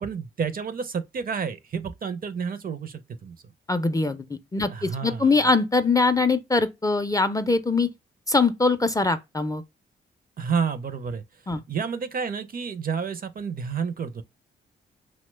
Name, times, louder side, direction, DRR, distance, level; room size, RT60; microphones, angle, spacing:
voice 1, 0.0-3.3 4.7-5.3 10.4-11.2 11.7-14.2, right 6 dB, 45° right, 0.5 m, -30 dB
voice 2, 3.7-7.9 8.3-9.6 11.5-11.6, left 3 dB, 15° left, 0.4 m, -22 dB
2.8 x 2.1 x 3.1 m
supercardioid pair, 50°, 21 cm